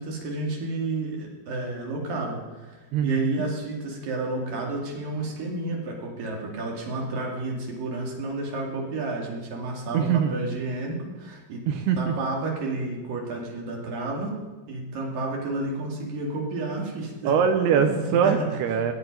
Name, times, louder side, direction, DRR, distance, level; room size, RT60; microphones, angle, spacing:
voice 1, 0.0-11.6 12.0-14.3 14.7-17.4 17.7-18.6, right 2 dB, 55° right, -1 dB, 3.7 m, -31 dB
voice 2, 2.9-3.4 9.9-10.3 11.7-12.1 17.3-18.9, right 7 dB, 75° right, 7 dB, 2.6 m, -23 dB
22.5 x 8.1 x 5.4 m, 1.2 s
omnidirectional pair, 5.2 m